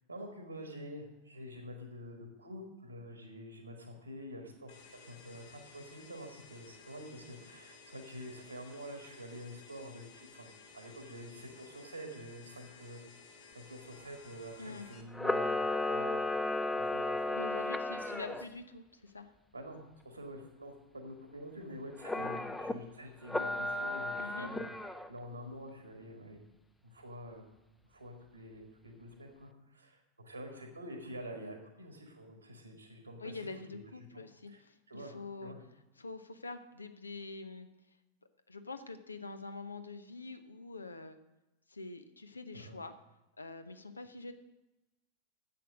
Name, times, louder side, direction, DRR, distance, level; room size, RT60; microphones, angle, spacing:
voice 1, 0.1-13.0 13.5-16.2 16.7-17.7 18.0-18.3 19.5-24.7 25.1-26.4 26.8-27.4 27.9-33.3 34.1-34.2 34.5-34.6 34.9-35.1 35.4-35.6 42.5-42.7, equal, 85° right, 3 dB, 1.5 m, -47 dB
sound 1, 4.7-15.0, left 5 dB, 50° left, 1.5 m, -56 dB
Camera, 15.1-18.4 22.0-22.7 23.3-25.1, left 2 dB, 5° left, 0.6 m, -34 dB
voice 2, 17.3-19.3 24.2-24.5 33.2-35.5 36.0-37.7 38.5-41.2 41.7-42.9 43.4-44.3, left 3 dB, 80° left, 10 dB, 0.8 m, -45 dB
10.0 x 7.9 x 6.2 m, 1.0 s
figure-of-eight pair, 90°, 0 cm